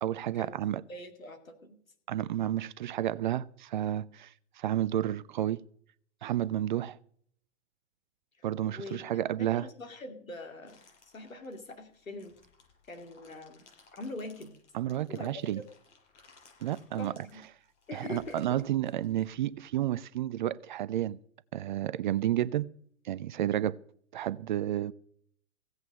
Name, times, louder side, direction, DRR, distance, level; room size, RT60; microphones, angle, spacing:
voice 1, 0.0-0.8 2.1-5.6 6.2-7.0 8.4-9.6 14.7-15.6 16.6-17.1 17.9-21.2 21.5-22.7 23.0-23.8 24.1-24.9, right 12 dB, 40° right, 0.4 m, -31 dB
voice 2, 0.9-1.8 8.4-12.3 12.9-13.6 13.9-14.5 15.1-15.3 17.0-17.4 17.9-18.4, left 2 dB, 80° left, 2.7 m, -43 dB
sound 1, 10.7-19.9, left 4 dB, 60° left, 7.1 m, -61 dB
16.5 x 8.1 x 6.5 m
figure-of-eight pair, 110°, 40 cm